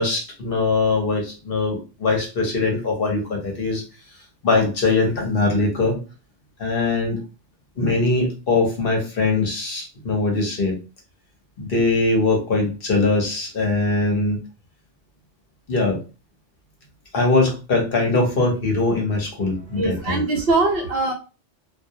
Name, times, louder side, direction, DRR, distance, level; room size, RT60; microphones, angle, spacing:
voice 1, 0.0-3.8 4.4-6.0 6.6-7.2 7.8-10.8 11.6-14.4 15.7-16.0 17.1-20.2, left 3 dB, 55° left, 0 dB, 0.9 m, -21 dB
voice 2, 19.7-21.1, right 3 dB, 65° right, 1 dB, 0.7 m, -21 dB
2.4 x 2.0 x 2.7 m, 0.32 s
omnidirectional pair, 1.2 m